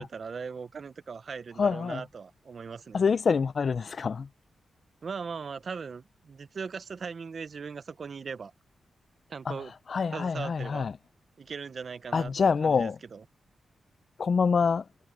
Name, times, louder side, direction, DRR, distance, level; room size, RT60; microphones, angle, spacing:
voice 1, 0.0-3.0 5.0-8.5 9.3-9.7 10.1-10.9 11.4-13.2, right 5 dB, 60° right, 0.9 m, -39 dB
voice 2, 1.6-2.0 2.9-4.3 9.5-9.6 9.9-10.9 12.1-13.0 14.2-14.8, left 5 dB, 60° left, 0.7 m, -26 dB
cardioid pair, 60°, 0 cm